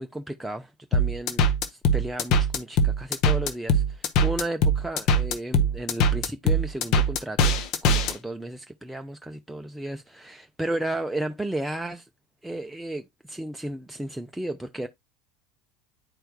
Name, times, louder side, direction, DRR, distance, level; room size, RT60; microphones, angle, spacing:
voice 1, 0.0-12.1 12.4-14.9, right 1 dB, 5° right, 0.5 m, -34 dB
sound 1, 0.9-8.1, equal, 50° left, 0.9 m, -21 dB
10.5 x 4.5 x 2.2 m
figure-of-eight pair, 75°, 0 cm